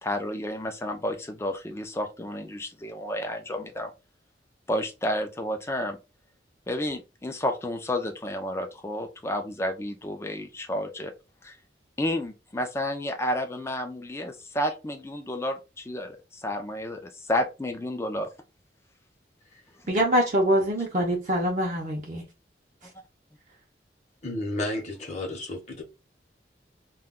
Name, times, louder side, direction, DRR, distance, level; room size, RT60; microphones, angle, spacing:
voice 1, 0.0-3.9 4.7-6.0 6.7-11.1 11.4-11.6 12.0-18.3, left 1 dB, 15° left, 0.4 m, -31 dB
voice 2, 19.9-22.2, equal, 45° right, 0.6 m, -24 dB
voice 3, 24.2-25.8, left 1 dB, 40° left, 0.8 m, -32 dB
2.3 x 2.2 x 3.6 m
head